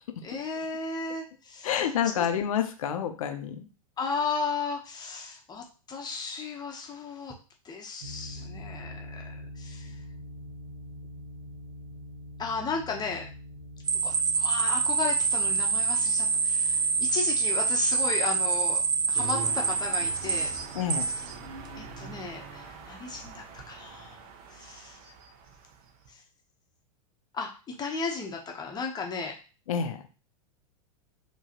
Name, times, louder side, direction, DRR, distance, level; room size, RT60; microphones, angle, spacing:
voice 1, 0.2-1.7 2.2-2.3 4.0-7.3 7.6-9.9 12.4-13.3 14.0-18.8 19.1-20.5 21.8-24.2 24.5-25.0 27.3-29.4, left 4 dB, 20° left, 1 dB, 1.0 m, -35 dB
voice 2, 1.6-3.7 20.7-21.1 29.7-30.0, left 8 dB, 75° left, 7 dB, 0.8 m, -28 dB
sound 1, 8.0-22.4, left 1 dB, 80° right, 0.7 m, -46 dB
sound 2, 13.9-21.3, right 5 dB, 20° right, 0.5 m, -26 dB
sound 3, 19.1-26.1, right 4 dB, 50° right, 1.1 m, -43 dB
4.8 x 3.1 x 3.0 m, 0.34 s
hypercardioid pair, 105°, 18 cm